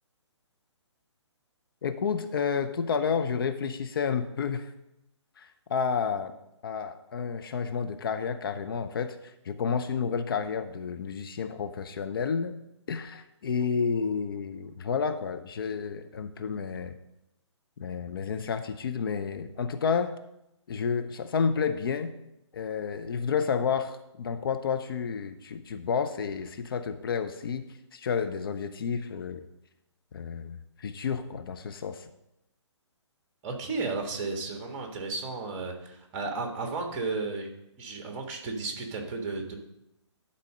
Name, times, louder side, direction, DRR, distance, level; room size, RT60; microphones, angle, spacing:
voice 1, 1.8-4.7 5.4-6.3 6.6-9.2 9.4-12.5 12.9-16.9 17.8-20.1 20.7-22.1 22.5-27.6 27.9-29.4 30.1-32.0, left 6 dB, 50° left, 8 dB, 0.7 m, -30 dB
voice 2, 33.4-37.5 37.8-39.5, right 3 dB, 25° right, 3 dB, 1.7 m, -33 dB
11.5 x 4.1 x 6.5 m, 0.87 s
figure-of-eight pair, 135°, 15 cm